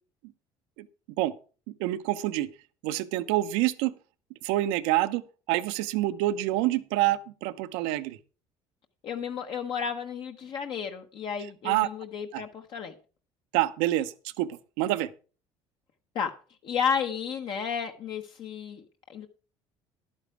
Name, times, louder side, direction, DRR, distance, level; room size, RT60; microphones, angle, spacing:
voice 1, 1.8-2.5 2.8-3.9 4.4-5.2 5.5-8.2 11.6-11.9 12.3-12.4 13.5-15.1, right 15 dB, 90° right, 13 dB, 0.7 m, -27 dB
voice 2, 9.0-12.9 16.1-16.3 16.6-19.3, left 7 dB, 55° left, 5 dB, 1.0 m, -32 dB
11.0 x 8.9 x 4.7 m, 0.37 s
cardioid pair, 115°, 10 cm